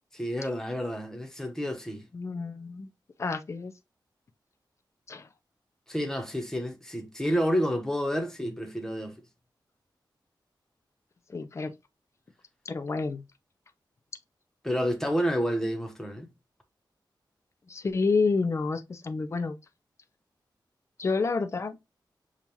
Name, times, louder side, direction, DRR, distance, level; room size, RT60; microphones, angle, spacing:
voice 1, 0.1-2.0 5.9-9.1 14.6-16.3, equal, 5° left, 0.9 m, -29 dB
voice 2, 2.1-2.9 3.2-3.7 5.1-5.3 11.3-11.7 12.7-13.2 17.7-19.6 21.0-21.8, left 4 dB, 35° left, 0.5 m, -29 dB
7.0 x 2.4 x 2.9 m
wide cardioid pair, 165°, 8 cm